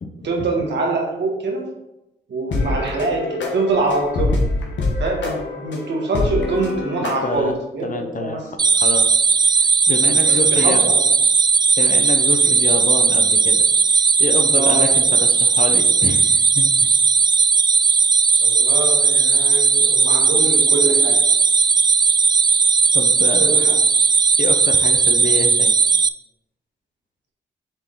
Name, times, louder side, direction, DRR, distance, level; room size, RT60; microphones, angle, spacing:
voice 1, 0.2-1.7 2.3-4.4 5.0-8.5 10.3-11.1 12.4-12.5 14.5-14.9 18.4-21.2 23.4-23.7, right 3 dB, 70° right, -1 dB, 1.7 m, -24 dB
sound 1, 2.5-7.5, left 2 dB, 80° left, 1.2 m, -25 dB
voice 2, 7.0-7.6 7.8-8.4 8.7-9.1 9.6-10.8 11.8-13.6 14.2-16.9 22.9-23.5 24.4-25.7, left 3 dB, 45° left, 6 dB, 0.8 m, -27 dB
sound 2, 8.6-26.1, right 5 dB, 25° right, 0.3 m, -16 dB
7.1 x 3.8 x 3.8 m, 0.91 s
cardioid pair, 60°, 19 cm